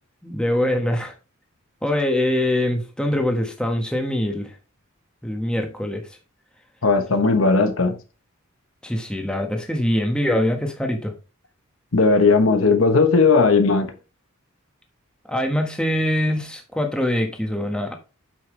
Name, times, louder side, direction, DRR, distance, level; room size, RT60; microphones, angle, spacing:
voice 1, 0.2-1.1 1.8-4.5 5.2-6.1 8.8-11.1 15.3-17.9, left 1 dB, 5° left, 1.4 m, -23 dB
voice 2, 6.8-8.0 11.9-13.9, left 4 dB, 70° left, 1.1 m, -17 dB
8.6 x 5.9 x 3.2 m
head